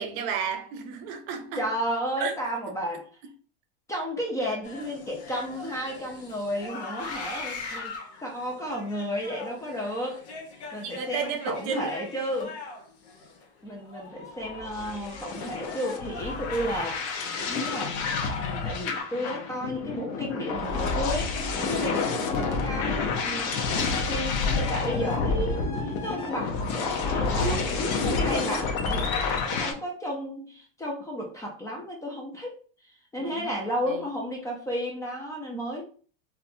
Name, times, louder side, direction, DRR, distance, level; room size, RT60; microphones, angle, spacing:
voice 1, 0.0-1.7 2.2-2.3 10.8-12.0 21.6-22.1 27.3-28.1 33.2-33.6 33.9-34.0, right 6 dB, 55° right, 0.6 m, -34 dB
voice 2, 1.6-3.1 3.9-7.9 8.2-10.2 10.5-12.6 13.6-18.0 18.4-23.6 24.1-35.8, equal, 10° left, 0.4 m, -33 dB
sound 1, 4.6-19.0, left 3 dB, 85° left, 1.0 m, -41 dB
sound 2, 14.5-29.7, left 4 dB, 60° left, 0.8 m, -29 dB
4.0 x 2.2 x 2.6 m
supercardioid pair, 140°, 33 cm